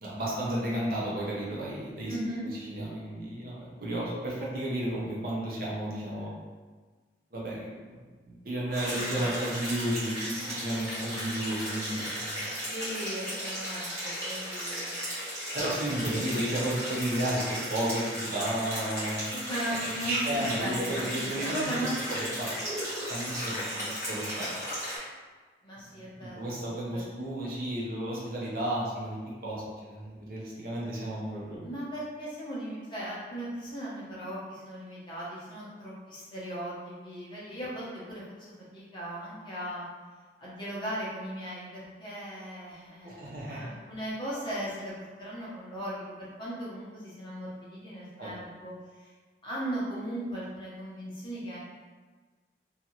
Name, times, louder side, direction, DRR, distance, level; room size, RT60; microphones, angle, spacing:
voice 1, 0.0-2.2 2.4-6.3 7.3-12.5 15.5-19.3 20.0-21.8 22.1-22.5 23.1-24.5 26.3-31.6 43.0-43.7 48.2-48.3, right 1 dB, 55° right, -5 dB, 0.7 m, -33 dB
voice 2, 2.1-2.5 8.8-9.3 12.7-14.9 15.5-16.2 19.5-21.9 25.6-26.7 31.6-39.8 40.4-48.7 49.0-49.1 49.4-51.6, right 1 dB, 25° left, -8 dB, 0.8 m, -38 dB
sound 1, 8.7-25.0, equal, 20° right, 1.0 m, -35 dB
2.7 x 2.4 x 2.8 m, 1.4 s
head